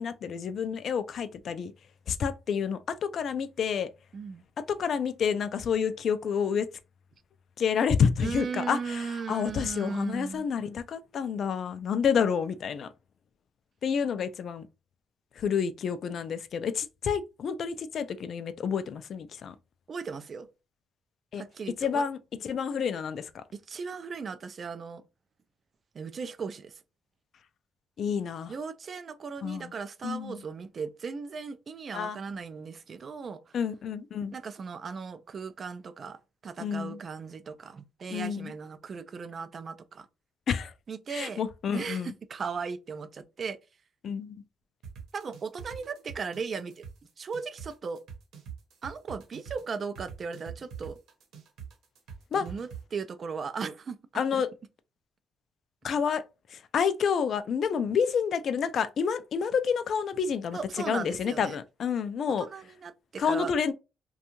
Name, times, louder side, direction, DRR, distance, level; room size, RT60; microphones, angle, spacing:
voice 1, 0.0-1.7 2.1-3.9 4.6-6.7 7.6-12.9 13.8-14.7 15.4-19.6 21.3-21.4 21.8-23.4 28.0-28.5 29.4-29.7 30.0-30.4 31.9-32.2 33.5-34.4 36.6-37.0 38.1-38.5 40.5-40.7 41.1-42.1 44.0-44.4 52.3-52.5 54.1-54.5 55.8-56.2 56.5-60.6 60.9-62.5 63.2-63.7, left 7 dB, 60° left, 0.3 m, -29 dB
voice 2, 4.1-4.4 8.2-10.5 19.9-20.5 21.4-22.0 23.5-25.0 25.9-26.8 28.5-33.5 34.3-40.1 40.9-41.4 41.7-43.6 45.1-46.8 47.2-48.0 48.8-51.0 52.4-54.4 60.5-61.6 62.4-63.5, right 5 dB, 45° right, 0.3 m, -37 dB
sound 1, 44.8-52.8, right 7 dB, 80° right, 0.9 m, -43 dB
2.6 x 2.2 x 2.9 m
cardioid pair, 90°, 0 cm